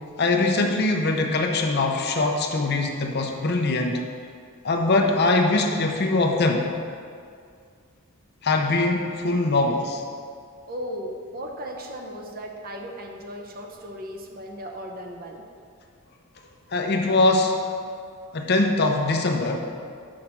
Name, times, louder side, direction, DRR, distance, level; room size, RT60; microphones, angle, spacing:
voice 1, 0.2-4.0 4.6-6.7 8.4-10.0 16.7-17.6 18.3-19.6, left 2 dB, 50° left, 3 dB, 0.7 m, -22 dB
voice 2, 10.7-15.5, equal, 45° right, 2 dB, 0.7 m, -36 dB
6.3 x 5.0 x 5.8 m, 2.2 s
head